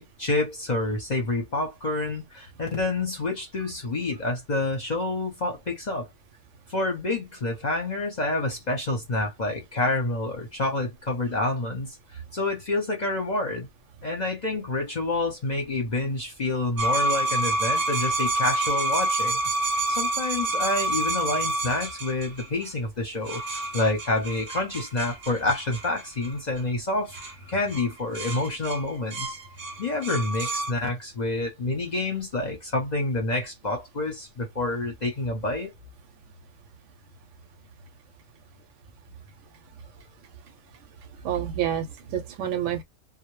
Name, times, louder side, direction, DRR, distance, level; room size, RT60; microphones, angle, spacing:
voice 1, 0.0-6.1 6.7-13.7 14.0-19.4 19.9-23.4 23.7-27.2 27.5-29.4 29.8-35.7, left 2 dB, 40° left, 0.7 m, -28 dB
sound 1, 16.8-22.7 23.3-26.6 27.1-27.3 27.7-27.9 28.1-30.7, right 2 dB, 50° right, 0.6 m, -28 dB
voice 2, 41.2-42.8, right 9 dB, 75° right, 0.9 m, -28 dB
2.1 x 2.1 x 3.0 m
omnidirectional pair, 1.3 m